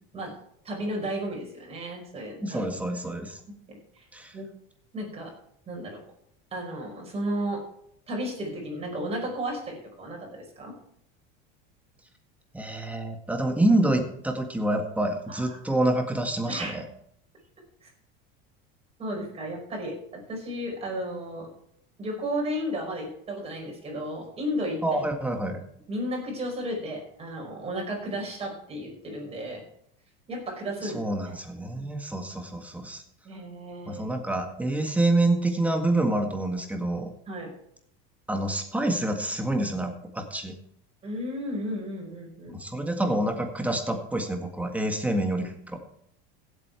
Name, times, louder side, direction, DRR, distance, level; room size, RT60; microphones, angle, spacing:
voice 1, 0.7-2.6 3.7-4.0 4.3-4.5 4.9-5.3 5.7-6.0 6.5-7.6 8.1-10.8 15.3-15.6 16.5-16.8 17.8-17.9 19.0-21.5 22.0-24.8 25.9-29.6 30.3-31.4 33.3-34.0 37.3-37.5 41.0-42.6, equal, 20° right, -1 dB, 5.3 m, -33 dB
voice 2, 2.4-3.4 4.1-4.3 12.5-16.8 24.8-25.6 30.8-33.0 33.9-37.1 38.3-40.6 42.5-45.8, right 1 dB, 5° right, 4 dB, 1.8 m, -27 dB
16.0 x 8.4 x 4.7 m, 0.72 s
cardioid pair, 145°, 29 cm